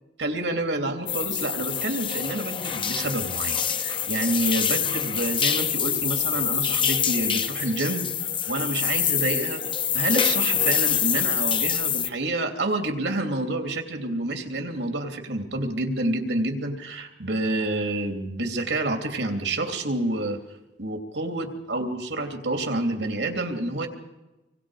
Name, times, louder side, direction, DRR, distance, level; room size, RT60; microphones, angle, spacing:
voice 1, 0.2-9.6 9.9-20.4 20.8-23.9, right 2 dB, 80° right, 5 dB, 3.0 m, -28 dB
sound 1, 1.1-12.1, left 8 dB, 30° left, 0.8 m, -25 dB
26.0 x 25.0 x 5.0 m, 1.1 s
head